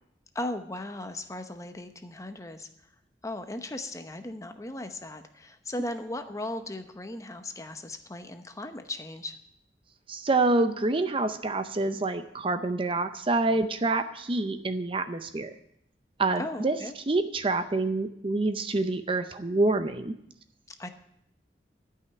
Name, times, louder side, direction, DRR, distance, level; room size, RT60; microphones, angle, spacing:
voice 1, 0.3-2.7 3.2-9.4 16.4-17.0 20.7-20.9, left 1 dB, 20° left, 8 dB, 0.8 m, -37 dB
voice 2, 10.1-15.6 16.2-16.8 17.1-20.2, right 2 dB, 30° right, 9 dB, 0.6 m, -27 dB
12.5 x 5.7 x 9.3 m, 0.75 s
head